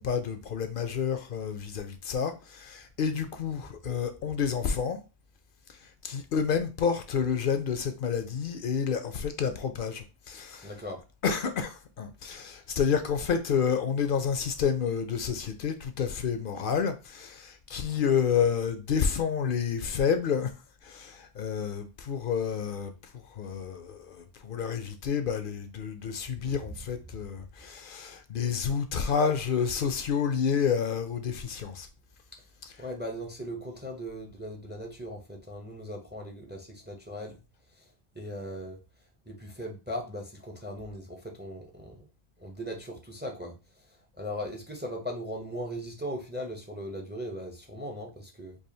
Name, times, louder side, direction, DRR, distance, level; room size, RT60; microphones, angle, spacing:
voice 1, 0.0-5.0 6.0-10.7 11.2-20.5 20.8-22.9 23.4-31.9, left 7 dB, 60° left, 0.7 m, -29 dB
voice 2, 10.6-11.0 32.8-37.4 37.7-37.8 38.1-38.8 39.3-42.1 42.4-43.6 43.9-48.6, equal, 15° right, 0.5 m, -38 dB
4.8 x 2.5 x 2.7 m
omnidirectional pair, 1.1 m